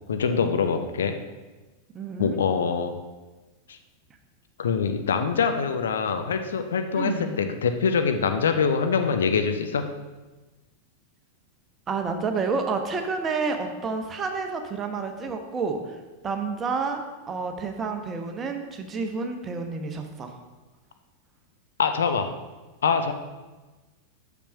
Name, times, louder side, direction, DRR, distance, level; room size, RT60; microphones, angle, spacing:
voice 1, 0.1-1.1 2.2-3.0 3.7-3.8 4.6-9.9 21.8-22.3 22.8-23.1, left 6 dB, 65° left, 7 dB, 0.6 m, -24 dB
voice 2, 1.9-2.4 6.9-7.4 11.9-16.0 16.2-20.3, right 4 dB, 25° right, 5 dB, 1.0 m, -29 dB
6.3 x 5.8 x 5.5 m, 1.2 s
figure-of-eight pair, 90°, 0 cm